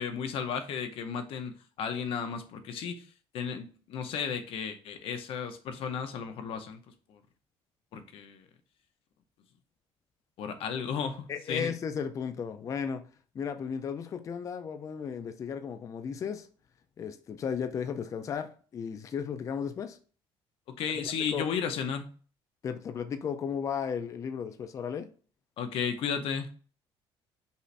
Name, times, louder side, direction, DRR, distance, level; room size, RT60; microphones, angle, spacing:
voice 1, 0.0-3.1 3.3-6.8 7.1-7.2 7.9-8.4 10.4-11.7 20.8-22.1 25.6-26.5, left 7 dB, 65° left, 0.7 m, -34 dB
voice 2, 11.3-13.0 13.3-16.5 17.0-20.0 21.0-21.5 22.6-25.1, left 7 dB, 30° left, 0.4 m, -35 dB
5.4 x 2.5 x 3.2 m
cardioid pair, 145°, 10 cm